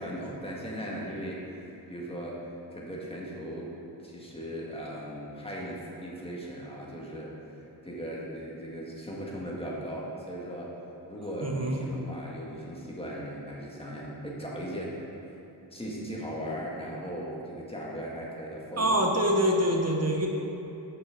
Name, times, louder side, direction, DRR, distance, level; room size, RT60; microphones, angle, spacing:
voice 1, 0.0-2.4 2.7-3.7 4.0-10.7 11.1-15.0 15.3-15.4 15.7-19.0, equal, 10° left, -4 dB, 1.8 m, -38 dB
voice 2, 11.4-11.8 18.8-20.3, equal, 30° right, 1 dB, 1.1 m, -25 dB
6.4 x 6.0 x 5.2 m, 3.0 s
cardioid pair, 40°, 48 cm